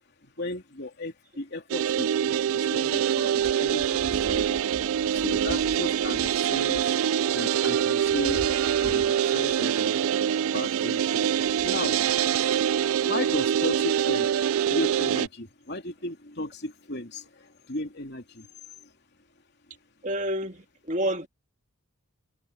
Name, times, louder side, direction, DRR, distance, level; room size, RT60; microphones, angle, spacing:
voice 1, 0.4-4.6 5.1-7.0 7.3-8.5 8.8-10.0 10.5-11.2 11.5-12.1 13.0-14.3 14.7-17.2 17.7-18.4, left 1 dB, 50° left, 3.2 m, -35 dB
sound 1, 1.7-15.3, right 9 dB, 70° right, 0.3 m, -25 dB
voice 2, 20.0-21.3, right 1 dB, 35° right, 2.0 m, -29 dB
head